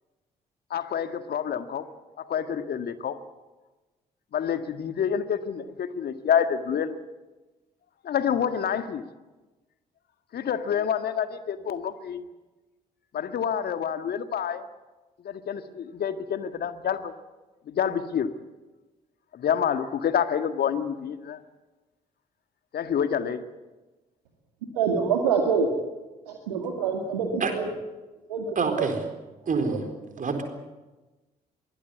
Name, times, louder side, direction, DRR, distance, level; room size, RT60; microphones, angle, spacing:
voice 1, 0.7-1.8 2.2-3.2 4.3-7.0 8.0-9.0 10.3-12.2 13.1-14.6 15.2-17.1 17.7-18.3 19.3-21.4 22.7-23.4, left 8 dB, 50° left, 10 dB, 1.8 m, -28 dB
voice 2, 24.7-25.7 26.3-27.7 28.3-28.9 29.7-29.8, right 6 dB, 75° right, 2 dB, 2.2 m, -26 dB
voice 3, 28.6-29.0 29.5-29.8 30.2-30.4, right 4 dB, 40° right, 6 dB, 4.2 m, -26 dB
23.5 x 19.5 x 8.2 m, 1.1 s
figure-of-eight pair, 45°, 20 cm